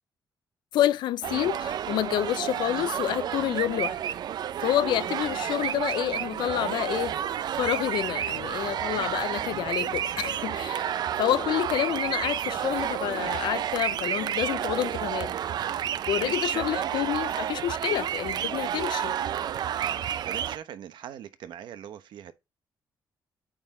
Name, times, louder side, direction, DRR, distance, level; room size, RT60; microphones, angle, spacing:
voice 1, 0.7-4.0 4.6-7.1 7.5-10.8 11.2-15.3 16.1-19.1, left 12 dB, 85° left, 0.4 m, -28 dB
sound 1, 1.2-20.6, right 10 dB, 65° right, 0.4 m, -30 dB
voice 2, 11.0-11.4 16.2-16.9 19.7-22.3, right 10 dB, 80° right, 1.0 m, -41 dB
8.8 x 3.9 x 3.7 m
cardioid pair, 100°, 8 cm